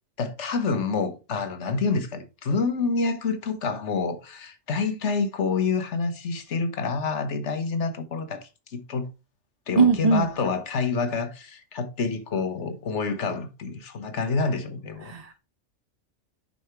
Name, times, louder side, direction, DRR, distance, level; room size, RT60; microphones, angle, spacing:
voice 1, 0.2-9.1 9.7-15.1, left 4 dB, 65° left, 1.4 m, -28 dB
voice 2, 9.8-10.3 15.1-15.4, right 4 dB, 35° right, 0.9 m, -20 dB
6.7 x 5.6 x 4.4 m
omnidirectional pair, 1.3 m